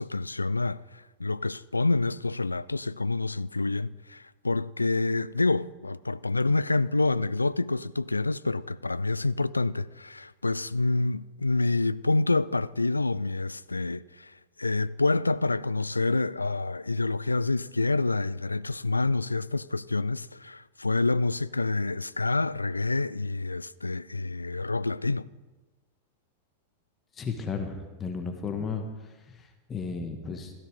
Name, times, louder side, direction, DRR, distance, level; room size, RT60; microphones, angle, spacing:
voice 1, 0.0-25.3, left 3 dB, 80° left, 0.4 m, -27 dB
voice 2, 27.1-30.5, left 5 dB, 20° left, 1.7 m, -34 dB
16.5 x 14.0 x 5.0 m
figure-of-eight pair, 90°, 0 cm